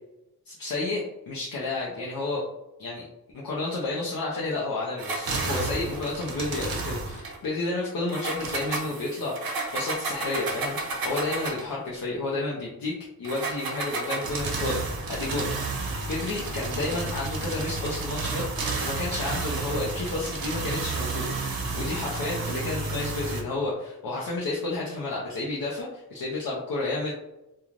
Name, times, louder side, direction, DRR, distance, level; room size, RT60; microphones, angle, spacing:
voice 1, 0.5-2.4 2.8-3.1 3.3-12.9 13.2-27.1, left 2 dB, 70° left, -4 dB, 0.6 m, -31 dB
sound 1, 5.0-7.4 8.1-11.7 13.2-23.4, right 3 dB, 70° right, 0.6 m, -31 dB
3.1 x 2.3 x 2.4 m, 0.93 s
wide cardioid pair, 80°, 36 cm